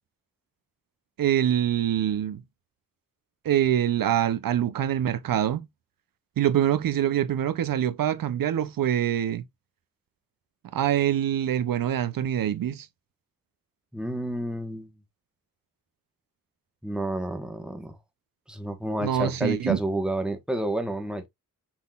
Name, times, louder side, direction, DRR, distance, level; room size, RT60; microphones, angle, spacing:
voice 1, 1.2-2.4 3.4-5.6 6.4-9.4 10.7-12.9 19.0-19.8, right 11 dB, 80° right, 0.5 m, -25 dB
voice 2, 13.9-14.9 16.8-18.0 18.5-21.3, right 1 dB, ahead, 1.0 m, -30 dB
6.0 x 3.7 x 2.3 m
wide cardioid pair, 115°, 34 cm